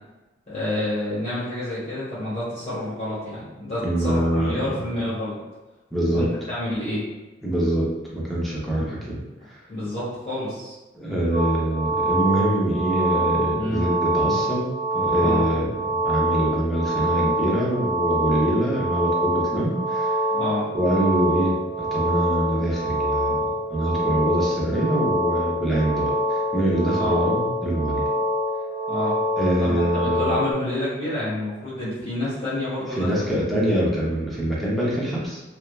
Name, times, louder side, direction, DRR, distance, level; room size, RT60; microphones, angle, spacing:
voice 1, 0.5-5.4 6.1-7.0 8.7-8.9 9.7-10.7 13.6-13.8 15.2-15.4 20.3-20.6 26.9-27.2 28.9-29.2 29.6-33.3, left 1 dB, 40° left, -11 dB, 1.0 m, -29 dB
voice 2, 3.8-4.6 5.0-5.1 5.9-6.3 7.4-9.2 9.5-9.6 10.9-20.2 20.7-23.4 23.7-28.1 29.4-30.4 32.9-35.4, right 1 dB, ahead, -6 dB, 0.6 m, -24 dB
sound 1, 11.3-30.5, right 1 dB, 65° right, 1.0 m, -25 dB
3.1 x 2.2 x 2.3 m, 1.1 s
head